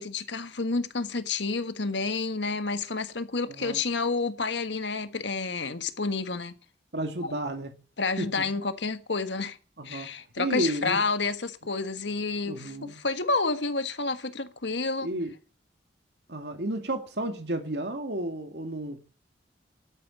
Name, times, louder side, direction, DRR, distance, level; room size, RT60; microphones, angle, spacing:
voice 1, 0.0-6.5 7.2-7.3 8.0-9.6 9.8-15.1, left 3 dB, 80° left, 1.5 m, -29 dB
voice 2, 3.5-3.8 6.9-7.7 8.2-8.4 9.8-10.1 10.4-11.0 12.4-13.0 15.0-15.3 16.3-19.0, right 1 dB, 70° right, 2.2 m, -32 dB
12.5 x 9.1 x 9.7 m
head